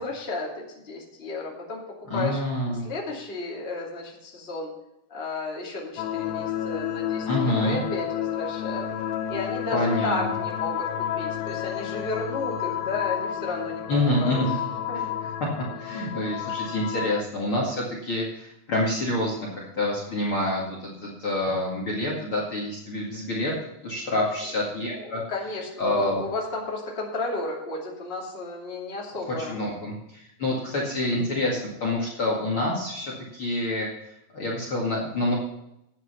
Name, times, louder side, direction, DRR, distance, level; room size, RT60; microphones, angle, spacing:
voice 1, 0.0-1.8 2.1-2.4 2.8-4.7 5.1-8.9 9.3-13.8 14.2-14.6 14.9-15.2 24.1-24.2 25.0-29.7, left 3 dB, 20° left, -2 dB, 2.4 m, -33 dB
voice 2, 2.1-2.9 7.3-7.8 9.7-10.4 13.9-14.5 15.8-23.5 23.8-25.2 25.8-26.2 29.3-35.3, left 1 dB, 40° left, -2 dB, 2.6 m, -27 dB
sound 1, 6.0-17.2, left 10 dB, 85° left, 2.7 m, -31 dB
11.5 x 9.2 x 5.7 m, 0.83 s
omnidirectional pair, 4.1 m